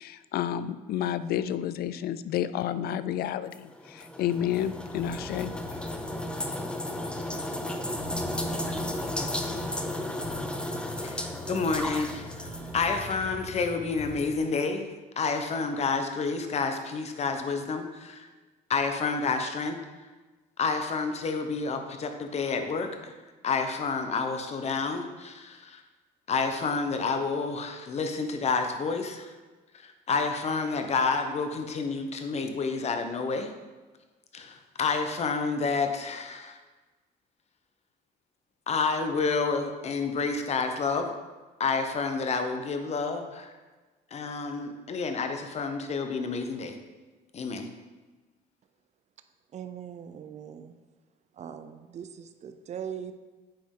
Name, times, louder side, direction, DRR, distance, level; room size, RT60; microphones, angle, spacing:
voice 1, 0.0-5.5, left 10 dB, 65° left, 14 dB, 0.4 m, -30 dB
sound 1, 3.5-13.1, left 1 dB, 5° left, 0.6 m, -34 dB
sound 2, 4.3-14.3, left 1 dB, 70° right, 1.7 m, -43 dB
voice 2, 11.0-14.9 15.2-18.3 18.7-19.8 20.6-23.1 23.4-25.8 26.3-29.3 29.7-33.5 34.3-36.6 38.7-41.1 41.6-43.5 44.1-46.8 47.3-47.7, left 4 dB, 40° left, 6 dB, 0.9 m, -29 dB
voice 3, 49.5-50.8 51.3-53.1, right 8 dB, 40° right, 9 dB, 0.6 m, -40 dB
8.7 x 5.2 x 3.7 m, 1.3 s
cardioid pair, 110°, 17 cm